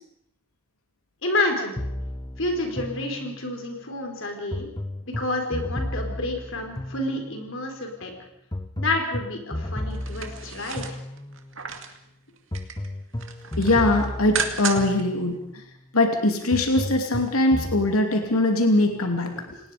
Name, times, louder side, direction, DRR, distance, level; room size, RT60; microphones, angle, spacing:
voice 1, 1.2-1.8 2.4-4.7 5.1-8.1 8.8-11.0, left 2 dB, 60° left, 3 dB, 4.7 m, -29 dB
sound 1, 1.8-3.6 4.5-7.6 8.5-11.6 12.5-15.5 16.5-17.9, left 1 dB, 20° left, 1.0 m, -33 dB
sound 2, 9.9-12.0 12.4-12.9 13.2-15.0 15.4-15.5, right 6 dB, 60° right, 2.4 m, -33 dB
voice 2, 13.6-15.6 15.9-19.6, left 2 dB, 85° left, 4 dB, 2.8 m, -22 dB
29.0 x 19.0 x 5.2 m, 0.77 s
head